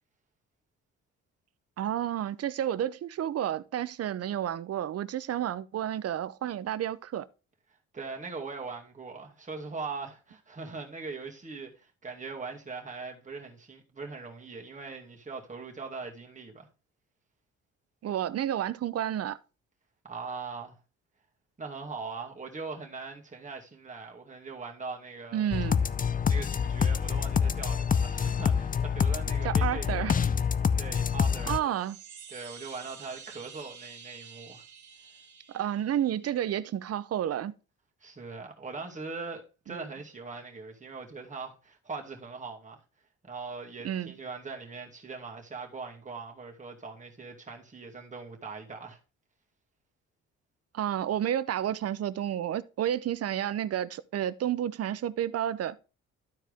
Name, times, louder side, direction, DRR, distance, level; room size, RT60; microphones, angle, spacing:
voice 1, 1.8-7.3 18.0-19.4 25.3-25.8 29.4-30.2 31.5-32.0 35.5-37.5 39.7-39.8 43.8-44.1 50.7-55.8, right 10 dB, 55° right, 0.6 m, -31 dB
voice 2, 7.9-16.7 20.0-20.8 21.6-25.5 26.3-30.1 30.8-31.7 32.3-34.6 38.0-42.8 43.2-49.0, right 4 dB, 25° right, 2.3 m, -41 dB
sound 1, 25.5-31.6, left 6 dB, 30° left, 0.5 m, -27 dB
sound 2, 31.5-36.5, right 6 dB, 70° right, 1.5 m, -49 dB
12.5 x 4.5 x 3.5 m
cardioid pair, 90°, 30 cm